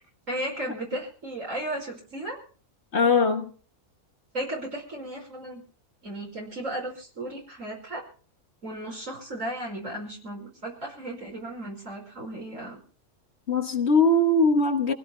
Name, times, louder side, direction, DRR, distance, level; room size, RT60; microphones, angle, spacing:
voice 1, 0.3-2.4 4.3-5.6 6.0-8.0 8.6-12.8, right 1 dB, 55° right, 5.6 m, -35 dB
voice 2, 2.9-3.5 13.5-14.9, left 2 dB, 50° left, 1.5 m, -21 dB
26.5 x 17.0 x 2.2 m
omnidirectional pair, 1.6 m